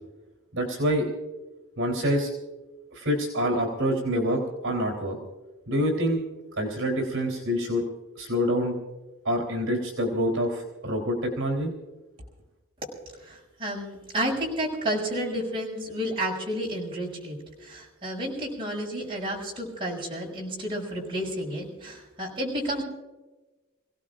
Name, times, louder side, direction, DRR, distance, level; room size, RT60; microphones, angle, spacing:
voice 1, 0.5-1.0 1.8-2.3 2.9-5.2 5.7-6.2 6.6-7.8 8.2-8.7 9.2-11.7, equal, 65° right, 2 dB, 3.5 m, -26 dB
voice 2, 13.2-22.8, right 1 dB, 25° right, -3 dB, 6.0 m, -31 dB
28.5 x 17.5 x 2.6 m, 1.1 s
head